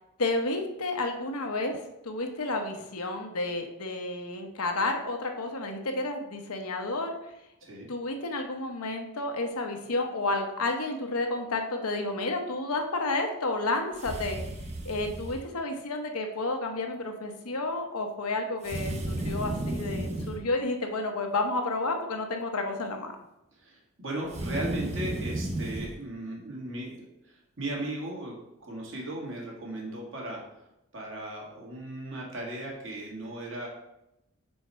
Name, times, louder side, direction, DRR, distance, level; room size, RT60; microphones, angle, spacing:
voice 1, 0.2-7.1 7.9-14.4 14.8-23.1, left 2 dB, 85° left, 4 dB, 1.0 m, -31 dB
voice 2, 7.6-7.9 23.6-28.3 28.6-30.4 30.9-33.7, right 1 dB, 60° right, -2 dB, 1.9 m, -37 dB
sound 1, 13.9-15.5 18.6-20.4 24.3-25.9, right 1 dB, 30° right, 0.6 m, -33 dB
4.5 x 4.4 x 5.5 m, 0.87 s
head